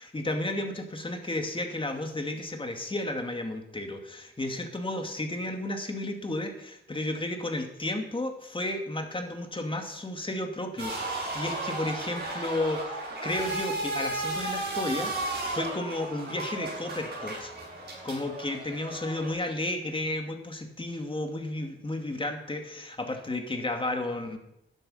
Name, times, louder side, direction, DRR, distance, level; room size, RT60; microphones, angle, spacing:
voice 1, 0.0-17.5 18.0-24.4, left 1 dB, 25° left, 4 dB, 2.4 m, -33 dB
sound 1, 10.8-19.3, right 2 dB, 55° right, 6.6 m, -34 dB
13.0 x 11.0 x 5.7 m, 0.83 s
cardioid pair, 80°, 20 cm